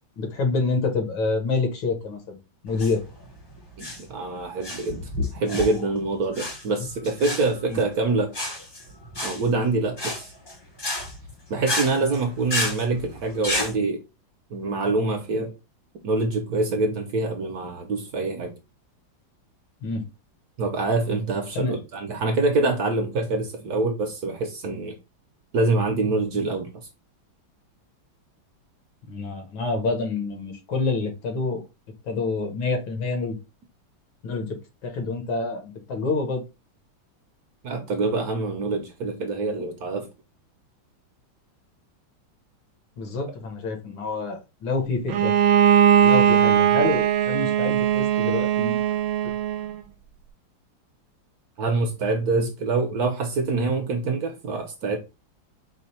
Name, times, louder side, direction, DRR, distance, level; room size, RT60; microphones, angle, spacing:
voice 1, 0.2-2.4 2.6-3.0 7.7-7.8 19.8-20.0 21.6-21.8 29.1-31.6 32.0-33.4 34.2-34.6 34.8-36.4 43.0-45.3 46.0-48.8 49.2-49.3, left 3 dB, 75° left, 2.0 m, -27 dB
sound 1, 2.7-13.7, left 1 dB, 25° left, 0.5 m, -31 dB
voice 2, 3.8-8.3 9.2-10.3 11.5-14.0 14.5-15.5 16.0-18.5 20.6-25.0 25.5-26.7 37.6-40.1 51.6-55.0, right 3 dB, 60° right, 1.1 m, -25 dB
Bowed string instrument, 45.1-49.8, right 9 dB, 80° right, 1.3 m, -19 dB
5.0 x 2.2 x 4.2 m
omnidirectional pair, 2.2 m